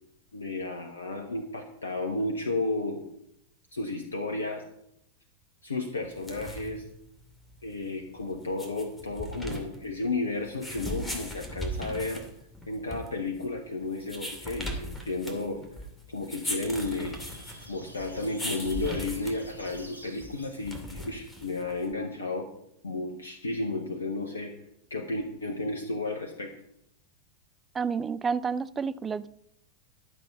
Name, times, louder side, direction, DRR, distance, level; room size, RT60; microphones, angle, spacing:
voice 1, 0.3-3.0 3.7-4.6 5.6-6.8 7.6-12.2 12.7-15.6 16.1-17.2 17.7-22.5 22.8-24.5 24.9-26.6, left 2 dB, 75° left, 1.2 m, -33 dB
sound 1, 6.0-21.9, equal, 10° left, 2.5 m, -39 dB
sound 2, 16.5-20.9, equal, 90° left, 1.5 m, -49 dB
voice 2, 27.7-29.3, right 5 dB, 20° right, 0.5 m, -30 dB
12.0 x 7.4 x 5.3 m
figure-of-eight pair, 90°, 0 cm